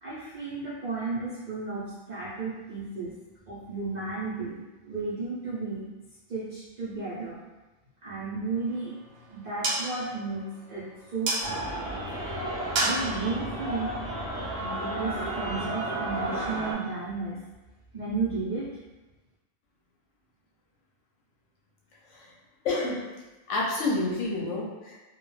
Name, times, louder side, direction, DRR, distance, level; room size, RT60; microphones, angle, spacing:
voice 1, 0.0-3.1 3.5-5.8 6.3-7.4 8.0-8.9 9.3-10.4 10.7-10.9 11.1-12.0 12.8-13.9 14.8-17.4 17.9-18.6, right 4 dB, 60° right, -10 dB, 0.4 m, -33 dB
sound 1, 8.5-14.9, right 2 dB, 90° right, 1.0 m, -34 dB
sound 2, 11.4-16.7, right 1 dB, 5° right, 0.6 m, -33 dB
voice 2, 22.6-23.0 23.5-25.0, left 2 dB, 70° left, -4 dB, 0.9 m, -29 dB
2.3 x 2.1 x 3.0 m, 1.1 s
omnidirectional pair, 1.4 m